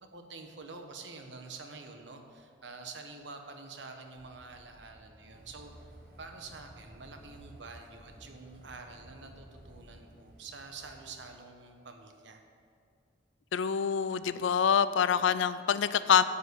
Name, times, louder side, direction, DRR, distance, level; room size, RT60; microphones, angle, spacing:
voice 1, 0.0-5.9 6.2-12.4, right 4 dB, 75° right, 4 dB, 1.1 m, -47 dB
sound 1, 4.1-9.8, equal, 10° left, 0.8 m, -56 dB
sound 2, 5.3-11.3, right 1 dB, 50° right, 1.3 m, -57 dB
voice 2, 13.5-16.2, left 7 dB, 85° left, 14 dB, 0.4 m, -26 dB
9.7 x 5.6 x 7.9 m, 2.3 s
head